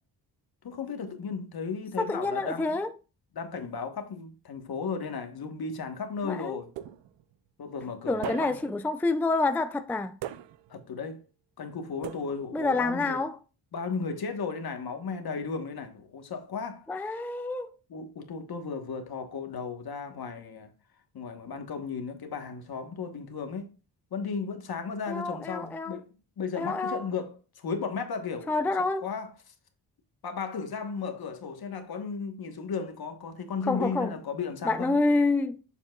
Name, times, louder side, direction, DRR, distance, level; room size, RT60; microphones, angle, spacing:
voice 1, 0.6-2.8 3.3-6.7 7.6-8.6 10.7-11.2 11.6-13.2 13.7-16.9 17.9-20.7 21.1-23.7 24.1-26.1 26.4-29.5 30.2-35.0, left 5 dB, 55° left, 1.4 m, -35 dB
voice 2, 2.0-2.9 6.2-6.6 8.1-10.1 12.5-13.4 16.9-17.7 25.1-26.0 26.6-27.0 28.5-29.0 33.7-34.1 34.6-35.6, left 3 dB, 5° left, 0.4 m, -28 dB
sound 1, 6.8-7.3 8.2-8.8 10.2-10.8 12.0-12.7, right 12 dB, 80° right, 0.7 m, -40 dB
7.1 x 7.1 x 2.4 m
cardioid pair, 70°, 43 cm